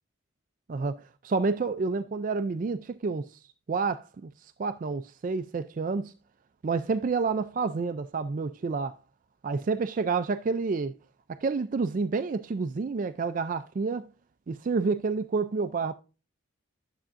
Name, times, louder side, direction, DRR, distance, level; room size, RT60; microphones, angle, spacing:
voice 1, 0.7-3.4 3.7-6.1 6.6-9.0 9.4-10.9 11.3-14.1 14.5-15.9, right 4 dB, 40° right, 0.3 m, -29 dB
11.0 x 7.1 x 2.5 m
head